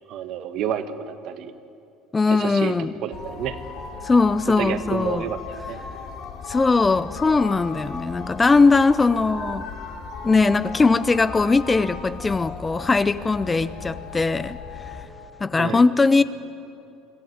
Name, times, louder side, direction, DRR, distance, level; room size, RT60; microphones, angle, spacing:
voice 1, 0.1-1.5 2.3-2.7 3.0-3.6 4.6-5.4 5.7-5.8 15.6-15.8, right 9 dB, 55° right, 10 dB, 1.3 m, -29 dB
voice 2, 2.1-2.9 4.0-5.3 6.5-9.7 10.2-15.0 15.4-16.2, left 3 dB, 15° left, 15 dB, 0.5 m, -20 dB
sound 1, 3.1-15.1, left 5 dB, 55° left, 2.7 m, -36 dB
23.0 x 15.0 x 9.4 m, 2.6 s
cardioid pair, 135°, 0 cm